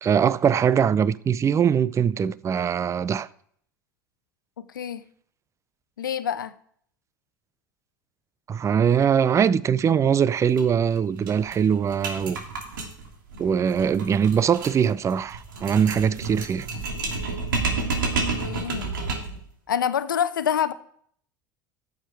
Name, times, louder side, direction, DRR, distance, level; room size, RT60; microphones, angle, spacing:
voice 1, 0.0-3.3 8.5-12.4 13.4-16.7, right 7 dB, 25° right, 0.6 m, -22 dB
voice 2, 4.6-5.0 6.0-6.5 18.1-18.9 19.7-20.7, left 8 dB, 80° left, 0.8 m, -27 dB
sound 1, 10.5-10.6 10.9-11.0 11.3-19.4, right 3 dB, 75° right, 2.8 m, -30 dB
14.5 x 7.3 x 4.7 m
figure-of-eight pair, 70°, 11 cm